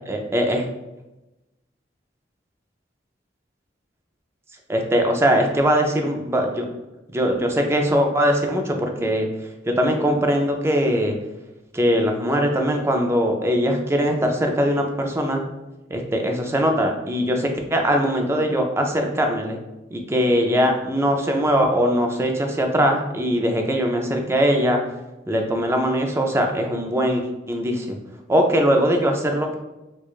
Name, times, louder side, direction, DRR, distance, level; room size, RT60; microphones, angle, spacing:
voice 1, 0.1-0.6 4.7-6.7 7.1-9.3 9.7-11.2 11.7-15.4 15.9-19.6 19.9-24.8 25.3-28.0 28.3-29.5, equal, 15° right, 3 dB, 0.4 m, -21 dB
4.6 x 2.3 x 2.3 m, 0.99 s
head